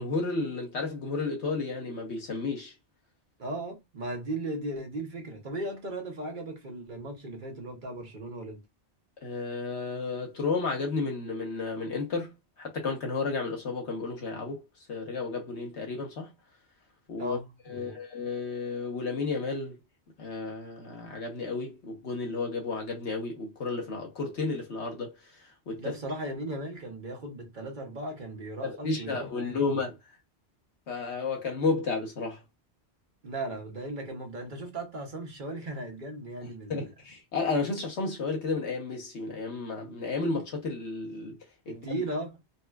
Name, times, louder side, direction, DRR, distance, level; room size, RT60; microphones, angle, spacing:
voice 1, 0.0-2.7 9.2-14.6 14.9-16.3 17.1-17.4 17.7-19.8 20.2-25.9 28.6-30.0 30.9-32.4 36.4-41.4 41.7-42.0, left 3 dB, 85° left, 1.3 m, -32 dB
voice 2, 3.4-8.6 17.2-18.0 25.8-29.8 33.2-36.9 41.7-42.4, right 1 dB, 50° right, 1.0 m, -37 dB
4.2 x 2.1 x 2.3 m
omnidirectional pair, 1.1 m